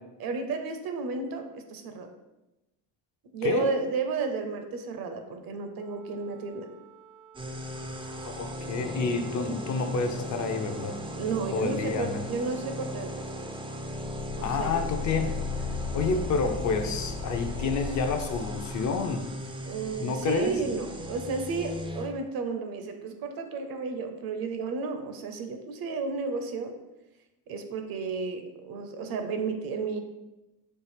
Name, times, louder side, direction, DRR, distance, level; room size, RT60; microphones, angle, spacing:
voice 1, 0.2-2.1 3.3-6.7 11.2-13.2 14.4-14.9 19.6-26.7 27.5-30.0, right 4 dB, 55° right, 7 dB, 0.6 m, -32 dB
Wind instrument woodwind instrument, 5.7-14.9, right 8 dB, 80° right, 1.1 m, -55 dB
sound 1, 7.3-22.1, equal, 15° right, 0.3 m, -38 dB
voice 2, 8.2-11.0 11.5-12.3 14.4-15.4 15.9-19.2 20.0-20.6, left 4 dB, 45° left, 5 dB, 0.5 m, -29 dB
sound 2, 13.8-19.3 19.8-19.9, left 5 dB, 70° left, 0.9 m, -36 dB
4.4 x 2.5 x 3.3 m, 0.99 s
cardioid pair, 95°, 44 cm